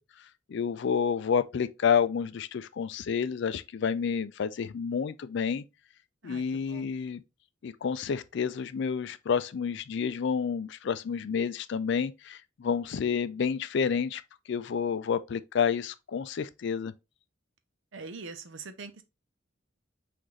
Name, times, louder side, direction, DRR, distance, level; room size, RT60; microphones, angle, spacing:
voice 1, 0.5-5.6 6.2-7.2 7.6-14.2 14.5-16.9, left 6 dB, 65° left, 0.4 m, -29 dB
voice 2, 6.2-6.9 17.9-19.0, right 4 dB, 75° right, 0.7 m, -43 dB
6.0 x 2.6 x 3.2 m
head